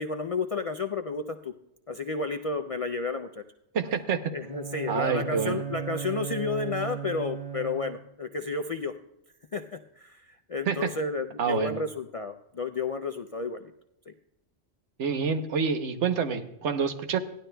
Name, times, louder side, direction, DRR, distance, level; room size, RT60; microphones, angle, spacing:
voice 1, 0.0-1.5 1.9-3.4 4.3-8.9 9.5-13.7 14.1-14.2, left 4 dB, 65° left, 6 dB, 0.3 m, -32 dB
voice 2, 3.7-4.2 4.9-5.6 10.7-10.9 11.4-11.8 15.0-17.2, right 6 dB, 75° right, 7 dB, 1.2 m, -27 dB
Bowed string instrument, 4.4-8.1, right 7 dB, 45° right, 1.6 m, -36 dB
17.0 x 12.0 x 2.2 m, 0.85 s
omnidirectional pair, 1.2 m